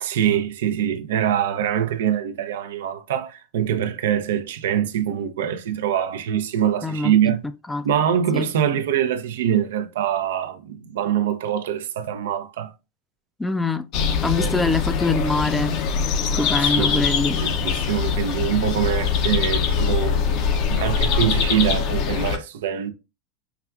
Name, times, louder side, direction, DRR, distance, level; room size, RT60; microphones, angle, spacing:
voice 1, 0.0-7.4 7.8-12.7 16.6-22.9, right 9 dB, 85° right, 0.5 m, -24 dB
voice 2, 6.8-7.1 7.7-7.9 8.3-8.5 13.4-13.9 14.2-15.8 16.4-17.4, left 3 dB, 10° left, 0.3 m, -24 dB
sound 1, 13.9-22.4, left 6 dB, 50° left, 0.6 m, -23 dB
5.6 x 2.3 x 2.3 m
supercardioid pair, 120°, 0 cm